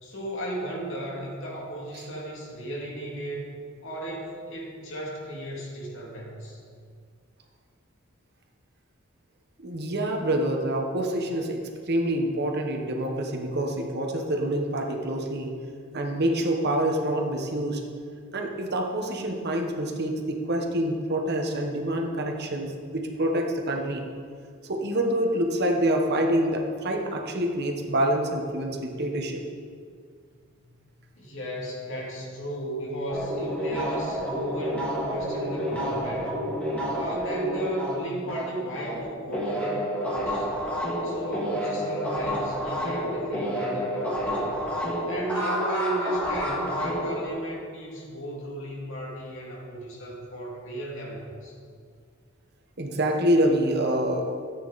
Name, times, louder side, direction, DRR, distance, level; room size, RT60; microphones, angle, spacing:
voice 1, 0.0-3.5 3.8-6.6 30.6-30.7 31.2-36.4 36.9-40.4 41.0-44.6 45.1-51.5, right 1 dB, 65° left, -3 dB, 2.6 m, -35 dB
voice 2, 9.6-15.5 15.9-17.8 18.3-24.1 24.7-29.4 52.8-54.4, right 1 dB, 50° right, 2 dB, 1.2 m, -26 dB
sound 1, 33.1-39.0 39.3-47.3, equal, 5° left, 2.1 m, -29 dB
14.0 x 8.6 x 4.1 m, 2.2 s
head